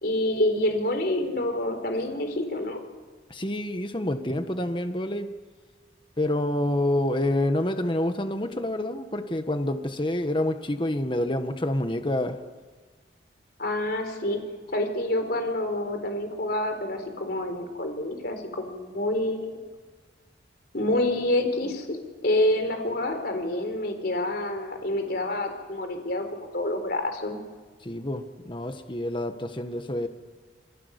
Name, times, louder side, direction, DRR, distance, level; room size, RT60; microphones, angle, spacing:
voice 1, 0.0-2.8 13.6-14.4 14.7-19.6 20.7-27.4, left 1 dB, 55° left, 6 dB, 4.2 m, -27 dB
voice 2, 3.3-5.3 6.2-12.4 27.8-30.1, left 1 dB, 25° left, 7 dB, 1.6 m, -27 dB
28.0 x 20.5 x 8.4 m, 1.4 s
head